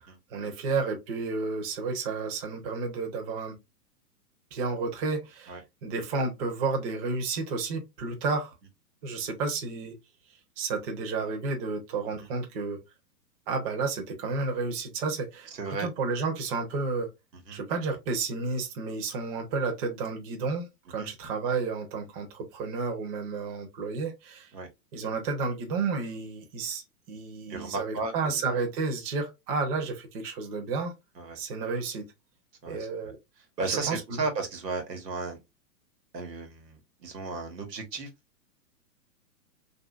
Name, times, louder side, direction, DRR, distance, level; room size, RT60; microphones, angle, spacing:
voice 1, 0.3-3.6 4.5-8.5 9.0-9.9 10.6-12.8 13.5-15.5 15.8-17.1 17.5-24.5 24.9-30.9 31.3-32.0 32.7-33.2 33.9-34.2, right 4 dB, 35° right, 0.8 m, -31 dB
voice 2, 15.5-15.9 17.3-17.6 21.0-21.1 24.5-24.7 27.5-28.5 31.1-31.4 32.6-32.8 33.6-35.4 36.1-38.1, right 3 dB, 85° right, 1.4 m, -34 dB
2.9 x 2.7 x 2.3 m
hypercardioid pair, 140°, 48 cm